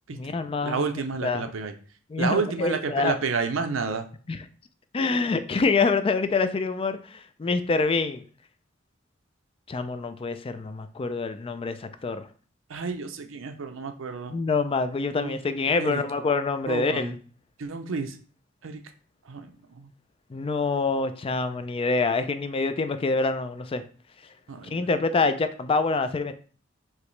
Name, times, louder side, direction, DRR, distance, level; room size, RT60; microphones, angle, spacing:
voice 1, 0.1-0.8 1.2-1.4 2.1-3.1 4.3-4.5 4.9-8.2 9.7-12.2 14.3-17.2 20.3-23.8 24.7-26.3, left 4 dB, 30° left, 10 dB, 0.3 m, -26 dB
voice 2, 0.6-1.7 2.2-4.0 12.7-14.3 15.2-16.0 16.7-17.1 17.6-18.1 18.6-18.8 19.3-19.5 24.5-24.9, right 4 dB, 80° right, 7 dB, 0.6 m, -30 dB
4.8 x 3.1 x 3.2 m, 0.42 s
head